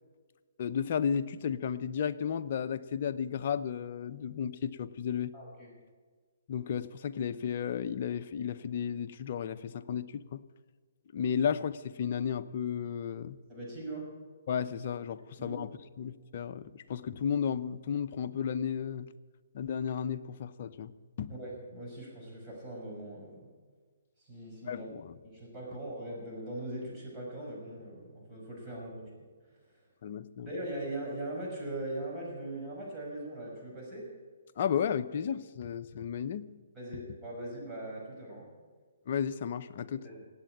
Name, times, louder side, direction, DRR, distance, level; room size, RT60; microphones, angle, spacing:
voice 1, 0.6-5.3 6.5-10.4 11.1-13.4 14.5-19.1 19.5-20.9 21.2-21.3 24.6-25.1 30.0-30.5 34.6-36.5 39.1-40.0, left 8 dB, 45° left, 10 dB, 0.8 m, -33 dB
voice 2, 5.3-5.7 13.5-14.1 15.4-15.6 21.3-23.5 24.3-24.9 25.2-29.1 30.4-34.1 36.8-38.5 40.1-40.2, right 1 dB, 10° right, -5 dB, 5.8 m, -40 dB
17.5 x 8.8 x 8.6 m, 1.5 s
hypercardioid pair, 145°, 0 cm